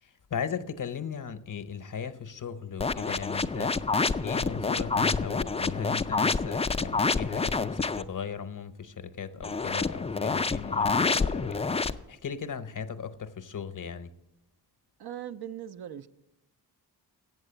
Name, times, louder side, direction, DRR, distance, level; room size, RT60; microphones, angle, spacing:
voice 1, 0.0-3.8 4.2-14.1, left 7 dB, 45° left, 0.8 m, -37 dB
sound 1, 2.8-8.0 9.4-11.9, left 4 dB, 15° left, 0.4 m, -28 dB
voice 2, 15.0-16.1, right 10 dB, 60° right, 0.6 m, -39 dB
8.0 x 7.4 x 7.8 m
cardioid pair, 50°, 44 cm